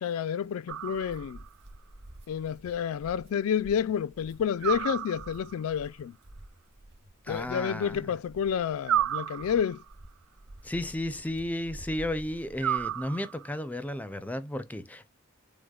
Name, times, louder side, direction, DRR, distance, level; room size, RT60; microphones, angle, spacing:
voice 1, 0.0-1.4 2.3-6.1 7.3-9.8, left 8 dB, 75° left, 0.3 m, -29 dB
sound 1, 0.7-13.0, right 1 dB, 55° right, 1.4 m, -50 dB
sound 2, 0.7-1.5 4.6-5.6 8.8-9.9 12.6-13.6, right 11 dB, 80° right, 0.3 m, -32 dB
voice 2, 7.2-8.0 10.6-15.1, left 1 dB, 5° left, 0.4 m, -33 dB
6.2 x 2.1 x 2.2 m
head